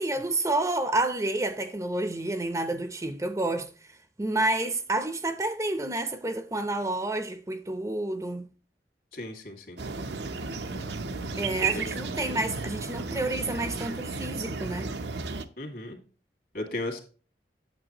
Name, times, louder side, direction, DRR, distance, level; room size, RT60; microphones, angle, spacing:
voice 1, 0.0-3.7 4.2-8.5 11.4-14.9, right 2 dB, 15° right, 0.6 m, -29 dB
voice 2, 9.1-9.8 11.7-11.9 15.6-16.0 16.5-17.0, left 2 dB, 55° left, 2.1 m, -35 dB
sound 1, 9.8-15.4, right 4 dB, 75° right, 0.8 m, -33 dB
8.9 x 7.2 x 2.9 m
head